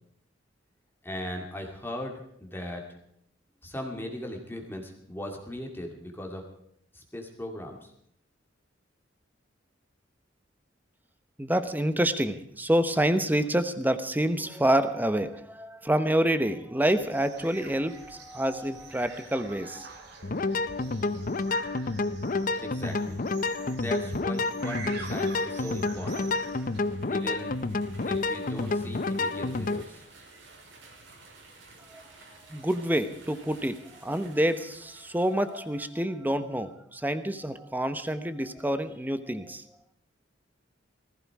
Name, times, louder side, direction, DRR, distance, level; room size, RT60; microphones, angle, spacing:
voice 1, 1.0-2.8 3.6-6.4 6.9-7.9 22.6-23.2 23.6-26.3 27.1-27.6 28.1-30.0, left 1 dB, 10° left, 2 dB, 2.4 m, -38 dB
voice 2, 11.4-19.9 31.9-32.0 32.5-39.6, right 1 dB, 10° right, 11 dB, 1.0 m, -27 dB
sound 1, 16.8-26.8, right 4 dB, 60° right, 2.9 m, -46 dB
sound 2, 20.2-29.8, left 3 dB, 45° left, 0.7 m, -29 dB
sound 3, 25.1-35.9, right 3 dB, 85° right, 5.7 m, -53 dB
19.0 x 15.0 x 4.8 m, 0.70 s
head